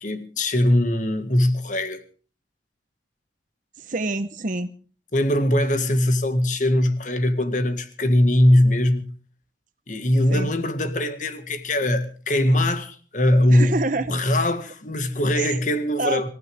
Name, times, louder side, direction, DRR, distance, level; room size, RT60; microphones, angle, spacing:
voice 1, 0.0-2.0 5.1-9.1 9.9-13.8 14.1-16.3, left 1 dB, 45° left, 1.9 m, -21 dB
voice 2, 3.8-4.7 10.3-10.5 13.5-14.1 15.3-15.6 16.0-16.3, right 2 dB, 45° right, 1.0 m, -27 dB
26.0 x 15.0 x 3.6 m
head